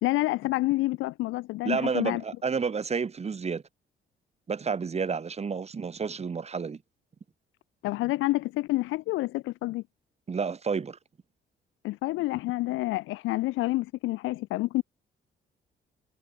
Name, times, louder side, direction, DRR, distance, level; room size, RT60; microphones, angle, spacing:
voice 1, 0.0-2.2 7.8-9.8 11.8-14.8, left 19 dB, 85° left, 0.4 m, -28 dB
voice 2, 1.6-3.6 4.5-6.8 10.3-11.0, right 5 dB, 30° right, 1.5 m, -30 dB
cardioid pair, 90°, 20 cm